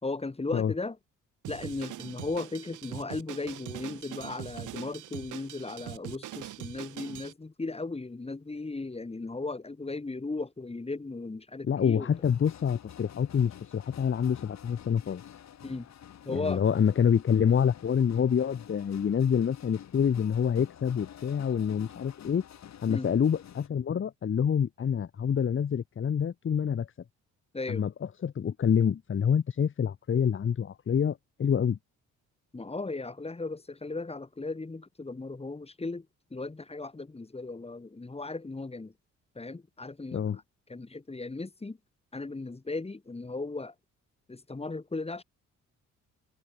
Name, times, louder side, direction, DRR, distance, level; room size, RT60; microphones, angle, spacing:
voice 1, 0.0-1.0 1.5-12.1 15.6-15.9 16.3-16.6 22.9-23.1 27.5-27.8 32.5-38.9 39.4-40.4 40.7-41.8 42.1-43.7 44.3-45.2, left 3 dB, 20° left, 5.6 m, -36 dB
Drum kit, 1.4-7.3, right 13 dB, 80° right, 6.7 m, -42 dB
voice 2, 11.7-15.2 16.3-22.4 22.8-26.9 27.7-27.9 28.2-31.8 40.1-40.4, left 7 dB, 40° left, 1.4 m, -27 dB
sound 1, 12.1-23.7, left 10 dB, 60° left, 4.4 m, -49 dB
cardioid pair, 90°, 30 cm